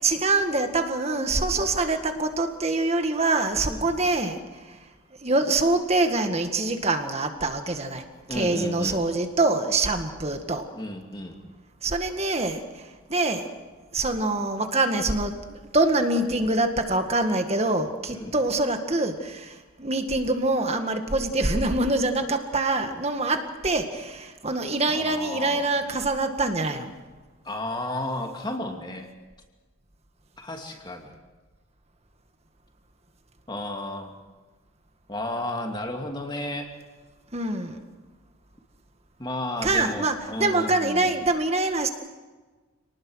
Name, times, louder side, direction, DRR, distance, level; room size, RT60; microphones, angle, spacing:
voice 1, 0.0-4.4 4.7-4.8 5.2-8.0 8.3-10.7 11.8-12.6 13.1-13.6 13.9-26.9 37.3-37.8 39.6-41.9, right 2 dB, 30° right, 6 dB, 1.8 m, -25 dB
voice 2, 8.3-9.0 10.7-11.4 15.5-15.6 18.1-18.3 24.9-25.7 27.4-29.1 30.4-31.1 33.5-34.2 35.1-36.7 39.2-41.1, left 1 dB, 20° left, 3 dB, 2.5 m, -33 dB
27.5 x 19.5 x 6.4 m, 1.3 s
head